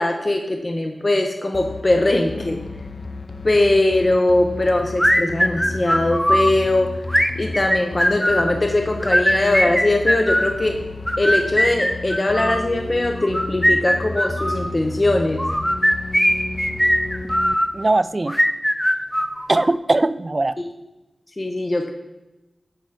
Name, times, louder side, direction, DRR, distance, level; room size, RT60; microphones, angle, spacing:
voice 1, 0.0-2.6 3.4-6.9 7.4-10.8 11.2-15.4 20.6-20.7 21.4-21.9, left 2 dB, 35° left, 3 dB, 0.8 m, -20 dB
sound 1, 1.5-17.5, left 2 dB, 60° left, 0.4 m, -32 dB
sound 2, 5.0-6.5 7.1-8.5 9.0-10.6 11.1-12.6 13.2-14.7 15.4-17.7 18.3-19.7, equal, 5° left, 0.6 m, -20 dB
voice 2, 17.7-18.4 19.5-20.6, right 2 dB, 35° right, 15 dB, 0.3 m, -20 dB
9.6 x 4.2 x 5.1 m, 1.0 s
wide cardioid pair, 75°, 0 cm